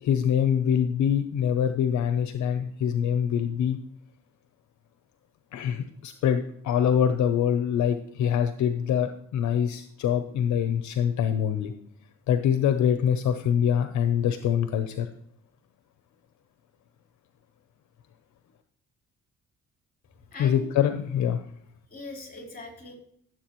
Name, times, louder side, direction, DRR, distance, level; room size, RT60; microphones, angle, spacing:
voice 1, 0.0-3.8 5.5-11.7 12.3-15.1 20.4-21.4, left 8 dB, 70° left, 8 dB, 0.7 m, -24 dB
voice 2, 20.3-20.7 21.9-22.9, left 3 dB, 30° left, 0 dB, 4.0 m, -40 dB
14.0 x 7.5 x 3.1 m, 0.68 s
cardioid pair, 90°, 30 cm